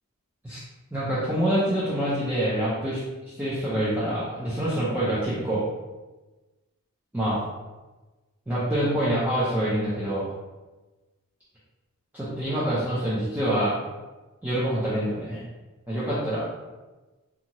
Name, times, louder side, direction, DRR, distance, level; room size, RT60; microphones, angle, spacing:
voice 1, 0.9-3.0 3.4-5.6 7.1-7.4 8.5-10.3 12.1-13.8 14.4-15.5 15.9-16.5, right 1 dB, 10° right, -10 dB, 0.5 m, -26 dB
2.7 x 2.3 x 2.9 m, 1.2 s
head